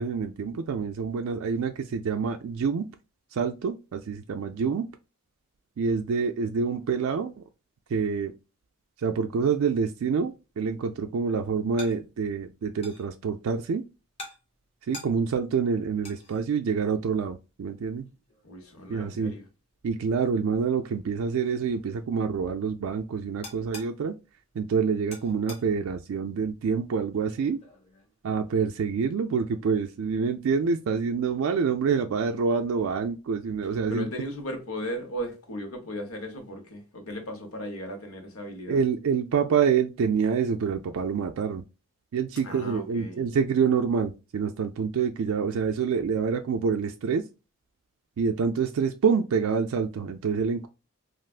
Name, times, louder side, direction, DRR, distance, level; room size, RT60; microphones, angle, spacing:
voice 1, 0.0-2.9 3.3-4.9 5.8-7.4 7.9-8.3 9.0-13.8 14.9-18.1 18.9-19.3 19.8-24.1 24.6-27.6 28.2-34.1 38.7-41.6 42.1-47.2 48.2-50.7, right 6 dB, 75° right, 0.3 m, -27 dB
sound 1, 10.3-28.8, left 2 dB, 25° left, 0.9 m, -51 dB
voice 2, 18.4-19.5 33.9-38.8 42.4-43.2, equal, 80° left, 1.0 m, -36 dB
3.4 x 2.5 x 2.3 m
head